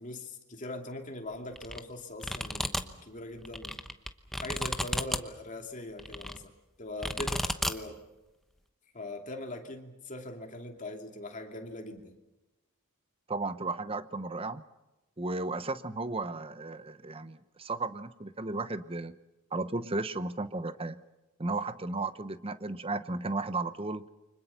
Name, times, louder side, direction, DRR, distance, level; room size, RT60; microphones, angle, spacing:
voice 1, 0.0-3.9 4.4-6.5 6.8-8.0 8.9-12.1, left 2 dB, 35° left, 3 dB, 2.6 m, -41 dB
sound 1, 1.6-1.8 2.2-2.8 3.4-5.2 6.0-6.4 7.0-7.7, equal, ahead, 1.0 m, -32 dB
voice 2, 13.3-14.6 15.2-19.2 19.5-21.0 21.4-24.1, right 3 dB, 25° right, 12 dB, 0.9 m, -34 dB
29.0 x 25.0 x 5.7 m, 1.0 s
head